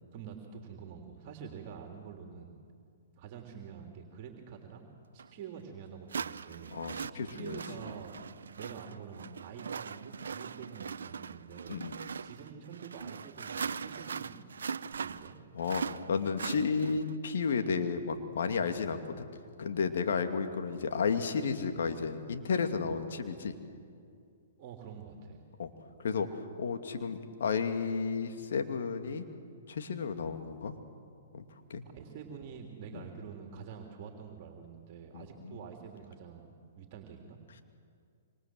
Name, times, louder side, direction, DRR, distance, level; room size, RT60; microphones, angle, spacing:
voice 1, 0.1-2.6 3.2-4.8 5.1-6.7 7.1-8.1 8.6-11.8 12.2-14.4 14.8-15.4 24.6-25.4 31.8-37.4, right 7 dB, 40° right, 3 dB, 3.3 m, -47 dB
sound 1, 5.2-5.3 6.1-17.2, right 6 dB, 75° right, 0.7 m, -40 dB
voice 2, 6.7-7.6 11.7-12.0 15.5-15.8 16.1-19.3 19.6-23.5 25.6-25.7 26.0-26.3 26.6-29.3 29.7-30.7 31.3-31.4 31.7-31.8 32.9-33.0 35.1-35.6, left 5 dB, 70° left, 6 dB, 2.5 m, -32 dB
27.0 x 25.5 x 7.9 m, 2.3 s
hypercardioid pair, 125°, 0 cm